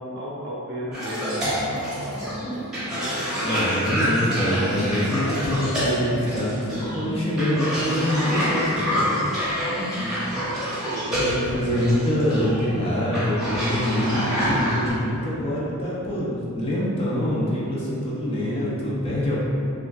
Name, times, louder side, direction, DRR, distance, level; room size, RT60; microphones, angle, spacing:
voice 1, 0.0-3.2 9.9-10.4, equal, 50° right, -6 dB, 0.5 m, -34 dB
Cough, 0.9-14.9, equal, ahead, 0.7 m, -27 dB
voice 2, 3.4-9.1 10.9-19.4, equal, 25° left, -6 dB, 0.4 m, -25 dB
3.2 x 2.4 x 2.2 m, 2.7 s
head